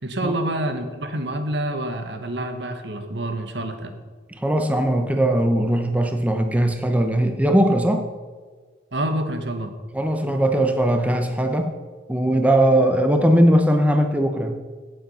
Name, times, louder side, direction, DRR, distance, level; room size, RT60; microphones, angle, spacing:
voice 1, 0.0-3.9 8.9-9.7, right 1 dB, 65° right, 7 dB, 1.5 m, -27 dB
voice 2, 4.3-8.0 9.9-11.7 12.1-14.6, right 1 dB, 10° right, 5 dB, 0.9 m, -19 dB
16.0 x 8.2 x 5.6 m, 1.5 s
head